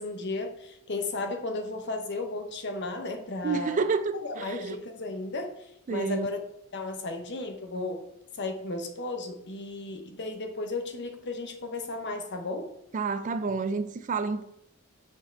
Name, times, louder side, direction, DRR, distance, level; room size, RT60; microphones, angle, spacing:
voice 1, 0.0-3.8 4.1-6.4 6.7-8.0 8.4-12.7, left 2 dB, 55° left, 0.9 m, -34 dB
voice 2, 3.4-4.8 5.9-6.3 12.9-14.4, right 4 dB, 35° right, 0.3 m, -29 dB
5.7 x 4.5 x 4.4 m
head